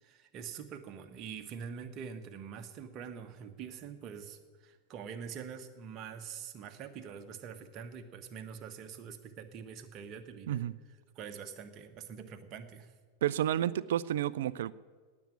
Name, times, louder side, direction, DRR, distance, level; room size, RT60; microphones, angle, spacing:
voice 1, 0.0-10.6 11.1-12.9, right 7 dB, 35° right, 7 dB, 1.5 m, -45 dB
voice 2, 13.2-14.7, right 11 dB, 55° right, 18 dB, 0.5 m, -30 dB
18.5 x 7.4 x 9.8 m, 1.5 s
figure-of-eight pair, 90°, 0 cm